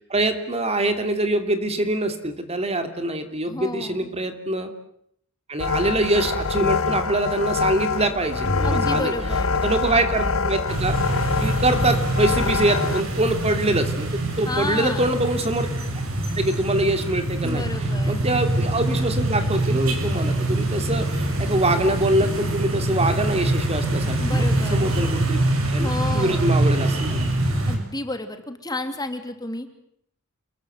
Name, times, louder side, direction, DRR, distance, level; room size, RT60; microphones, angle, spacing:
voice 1, 0.1-4.7 5.5-9.1 9.6-11.0 11.4-15.7 16.3-17.7 18.1-25.4 25.7-27.3, right 1 dB, 30° right, 8 dB, 2.9 m, -24 dB
voice 2, 3.5-4.1 8.6-9.5 14.4-15.1 17.4-18.3 24.2-24.9 25.8-26.6 27.7-29.7, left 2 dB, 20° left, 7 dB, 2.6 m, -31 dB
sound 1, 5.6-13.0, left 4 dB, 70° left, 1.9 m, -25 dB
sound 2, 8.5-10.6, left 1 dB, 55° left, 5.4 m, -31 dB
sound 3, 10.7-27.8, right 1 dB, 70° right, 7.0 m, -24 dB
29.0 x 22.0 x 8.0 m, 0.69 s
head